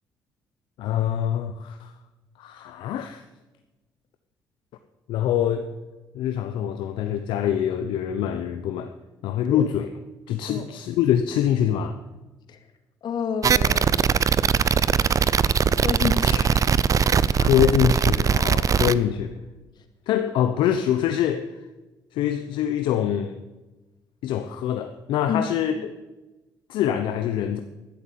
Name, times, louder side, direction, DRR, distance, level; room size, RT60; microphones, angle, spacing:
voice 1, 0.8-1.9 2.4-3.2 5.1-5.7 6.1-8.9 9.2-9.9 10.3-12.0 17.3-19.3 20.1-21.5 22.1-23.4 24.2-25.9 26.7-27.6, left 10 dB, 80° left, 8 dB, 0.8 m, -24 dB
voice 2, 13.0-13.9 15.7-16.8 25.3-25.4, left 6 dB, 65° left, 7 dB, 2.4 m, -29 dB
sound 1, 13.4-18.9, right 6 dB, 45° right, 0.6 m, -20 dB
12.0 x 11.5 x 7.6 m, 1.1 s
supercardioid pair, 70°, 8 cm